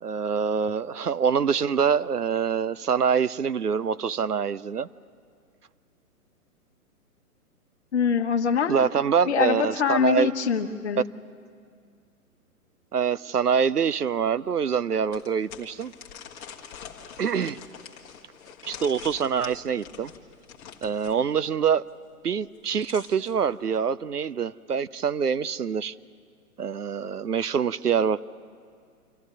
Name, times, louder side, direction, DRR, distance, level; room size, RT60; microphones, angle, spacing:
voice 1, 0.0-4.9 8.7-10.3 12.9-15.9 17.2-17.6 18.7-20.1 20.8-21.8 22.2-25.9 26.6-28.2, right 6 dB, 80° right, 16 dB, 0.7 m, -25 dB
voice 2, 7.9-8.8 9.3-11.0, left 7 dB, 45° left, 8 dB, 1.3 m, -24 dB
sound 1, 13.6-13.7 14.2-14.3 15.1-21.2 22.4-23.3, left 8 dB, 20° left, 1.6 m, -45 dB
25.5 x 14.5 x 9.8 m, 2.2 s
figure-of-eight pair, 125°, 45 cm